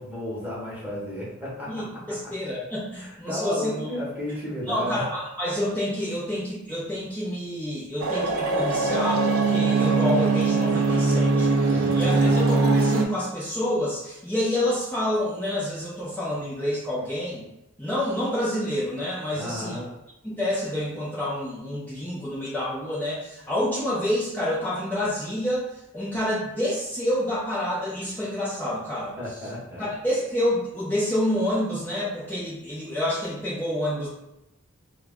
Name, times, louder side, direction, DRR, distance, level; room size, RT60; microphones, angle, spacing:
voice 1, 0.0-2.0 3.0-5.0 11.7-12.4 19.3-19.9 29.2-29.9, left 1 dB, 10° right, -7 dB, 1.1 m, -33 dB
voice 2, 1.7-3.7 4.6-17.4 17.8-19.8 20.4-29.1 29.8-34.1, left 1 dB, 10° left, -10 dB, 0.7 m, -28 dB
sound 1, 8.0-13.0, right 3 dB, 75° right, 0.5 m, -21 dB
3.1 x 2.3 x 3.6 m, 0.89 s
head